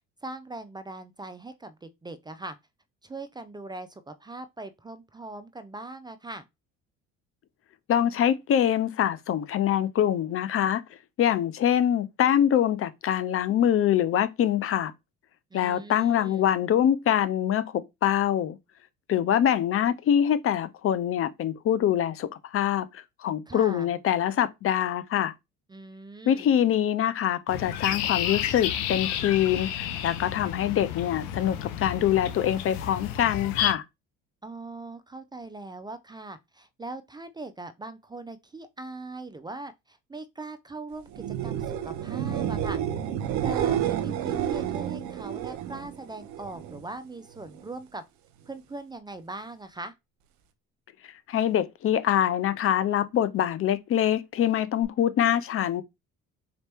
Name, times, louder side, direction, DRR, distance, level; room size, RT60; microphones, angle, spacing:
voice 1, 0.2-2.6 3.0-6.4 15.5-16.5 23.5-23.9 25.7-26.5 34.4-42.8 43.4-48.0 48.5-49.9, right 2 dB, 15° right, 0.4 m, -40 dB
voice 2, 7.9-10.8 11.2-14.9 15.5-18.6 19.1-25.3 26.3-33.8 51.3-55.8, left 10 dB, 50° left, 0.6 m, -24 dB
sound 1, 27.5-33.7, left 10 dB, 85° left, 0.7 m, -31 dB
sound 2, 41.1-46.8 47.2-47.8 54.8-54.9, right 10 dB, 70° right, 0.7 m, -30 dB
4.1 x 2.9 x 3.4 m
supercardioid pair, 85°, 30 cm